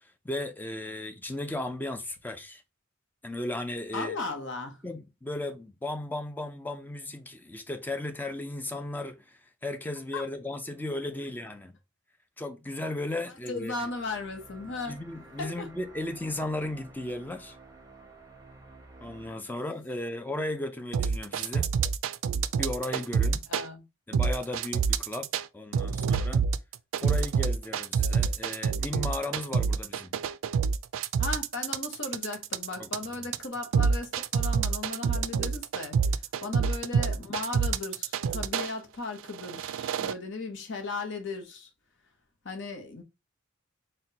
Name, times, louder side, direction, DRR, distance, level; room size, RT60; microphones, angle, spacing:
voice 1, 0.0-2.6 3.2-4.2 4.8-11.8 12.4-13.9 14.9-17.6 19.0-21.7 22.6-23.5 24.1-25.3 25.5-26.4 27.0-30.1 32.8-32.9, left 1 dB, 10° left, 0.4 m, -35 dB
voice 2, 3.9-4.8 10.1-10.2 13.5-15.0 15.4-15.7 23.5-23.8 31.2-41.7 42.4-43.0, left 3 dB, 60° left, 0.9 m, -36 dB
sound 1, 13.1-19.3, right 3 dB, 15° right, 0.8 m, -52 dB
sound 2, 20.9-23.7 24.1-25.4 25.7-38.7 39.3-40.1, right 6 dB, 75° right, 0.3 m, -27 dB
4.2 x 2.2 x 3.9 m
head